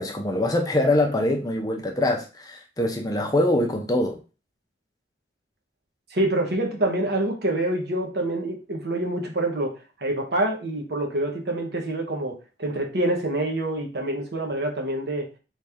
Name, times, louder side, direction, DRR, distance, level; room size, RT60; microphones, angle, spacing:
voice 1, 0.0-4.2, left 1 dB, 20° left, 0.6 m, -24 dB
voice 2, 6.1-9.7 10.0-15.3, right 1 dB, 60° right, 1.1 m, -26 dB
4.1 x 3.2 x 3.5 m
head